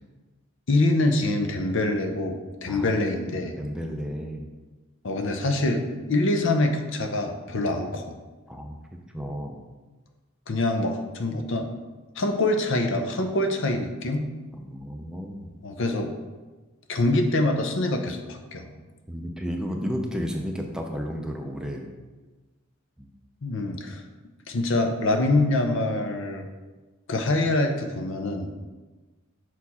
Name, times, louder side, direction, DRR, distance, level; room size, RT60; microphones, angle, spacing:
voice 1, 0.7-3.6 5.0-8.2 10.5-11.7 12.2-14.3 15.6-16.1 16.9-18.7 23.4-24.0 24.5-26.5 27.1-28.5, left 2 dB, 65° left, 5 dB, 0.7 m, -25 dB
voice 2, 2.7-3.0 3.6-4.5 8.5-8.8 9.1-9.6 14.6-15.5 19.1-21.9 23.0-23.1, equal, 5° right, 2 dB, 0.5 m, -32 dB
6.1 x 4.4 x 4.2 m, 1.2 s
head